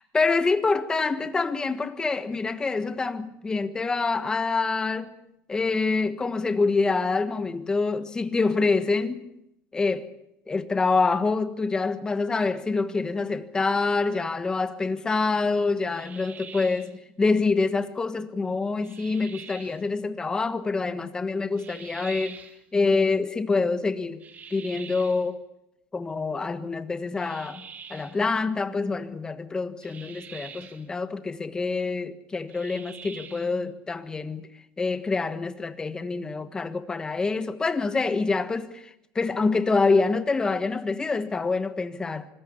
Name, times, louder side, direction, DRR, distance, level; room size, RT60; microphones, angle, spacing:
voice 1, 0.1-5.2 5.5-9.3 9.7-10.1 10.5-22.4 22.7-24.2 24.5-25.4 25.9-27.6 27.9-34.5 34.8-42.3, left 4 dB, 15° left, 1.5 m, -26 dB
sound 1, 15.9-17.0 18.8-19.8 21.6-22.6 24.2-25.3 27.2-28.2 29.8-30.9 32.5-33.6, right 7 dB, 30° right, 2.4 m, -45 dB
25.5 x 20.5 x 8.4 m
cardioid pair, 150°, 5 cm